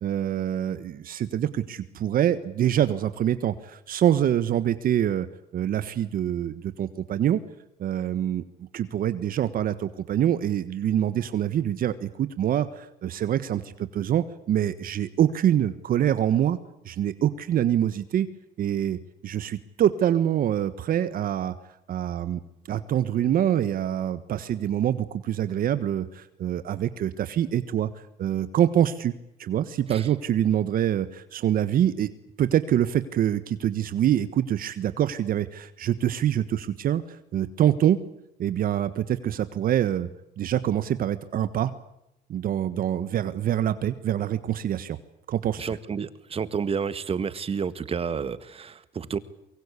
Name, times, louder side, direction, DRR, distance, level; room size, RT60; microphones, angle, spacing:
voice 1, 0.0-5.3 5.5-7.4 7.8-8.4 8.7-13.6 13.9-16.6 16.8-18.3 18.6-21.5 21.9-22.4 22.7-27.9 28.2-29.1 29.4-32.1 32.4-38.0 38.4-40.1 40.4-41.7 42.3-45.0 45.3-45.6, right 10 dB, 60° right, 13 dB, 1.5 m, -25 dB
voice 2, 45.6-49.2, right 6 dB, 35° right, 14 dB, 1.8 m, -30 dB
23.5 x 23.5 x 8.4 m, 0.82 s
cardioid pair, 110°, 17 cm